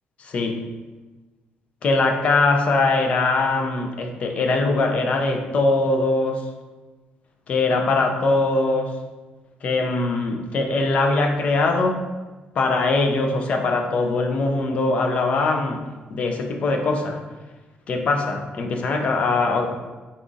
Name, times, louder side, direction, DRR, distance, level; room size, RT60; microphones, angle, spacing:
voice 1, 0.2-0.7 1.8-6.4 7.5-8.9 9.6-12.1 12.6-15.8 16.1-17.2 17.9-19.8, left 3 dB, 40° left, 3 dB, 0.4 m, -21 dB
4.1 x 2.4 x 3.8 m, 1.2 s
cardioid pair, 175°, 3 cm